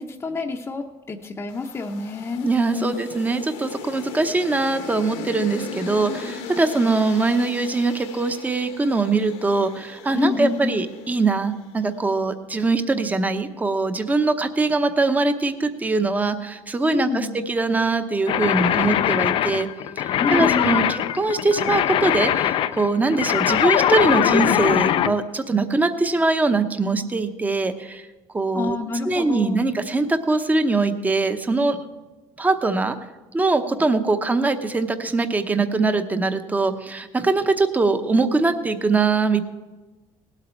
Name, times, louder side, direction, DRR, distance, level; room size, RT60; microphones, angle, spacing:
voice 1, 0.0-2.5 2.7-2.9 10.1-10.9 16.9-17.4 20.2-20.9 28.5-29.7, left 4 dB, 25° left, 0 dB, 0.8 m, -27 dB
sound 1, 1.5-11.8, left 5 dB, 75° left, 1.3 m, -38 dB
voice 2, 2.4-19.7 20.0-28.1 28.3-28.8 29.0-31.8 32.4-33.0 33.3-39.4, right 3 dB, 15° right, 8 dB, 0.8 m, -22 dB
sound 2, 18.3-25.1, left 11 dB, 55° left, 0.5 m, -21 dB
18.0 x 8.3 x 4.5 m, 1.2 s
cardioid pair, 115°, 11 cm